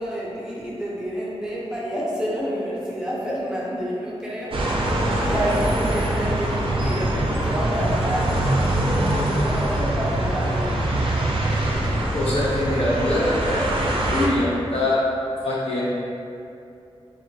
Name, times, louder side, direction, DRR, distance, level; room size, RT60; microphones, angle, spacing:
voice 1, 0.0-8.4 9.1-10.9, equal, 5° right, -7 dB, 0.6 m, -29 dB
sound 1, 4.5-14.3, right 1 dB, 55° right, 0.4 m, -23 dB
voice 2, 12.1-15.0 15.4-15.8, left 1 dB, 65° left, -7 dB, 0.6 m, -23 dB
2.3 x 2.1 x 2.6 m, 2.6 s
cardioid pair, 50°, 11 cm